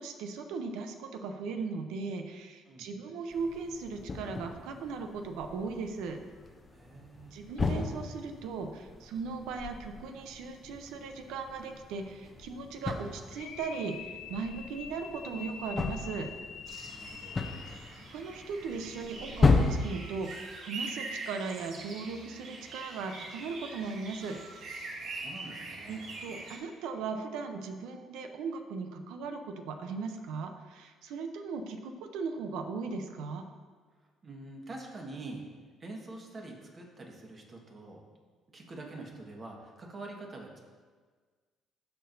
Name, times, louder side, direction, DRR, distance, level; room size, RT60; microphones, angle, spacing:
voice 1, 0.0-6.2 7.3-16.3 18.1-24.4 25.9-33.4, right 4 dB, 85° right, 6 dB, 0.7 m, -38 dB
sound 1, 3.3-19.7, left 4 dB, 25° left, 0.6 m, -35 dB
voice 2, 6.7-7.4 16.8-17.5 25.0-26.1 34.2-35.5 35.8-38.0 38.5-40.6, right 2 dB, 35° right, 0 dB, 1.5 m, -45 dB
sound 2, 13.3-18.0, left 7 dB, 90° left, 0.5 m, -45 dB
sound 3, 16.7-26.6, right 3 dB, 65° right, 1.1 m, -43 dB
13.0 x 4.5 x 2.7 m, 1.5 s
cardioid pair, 100°, 0 cm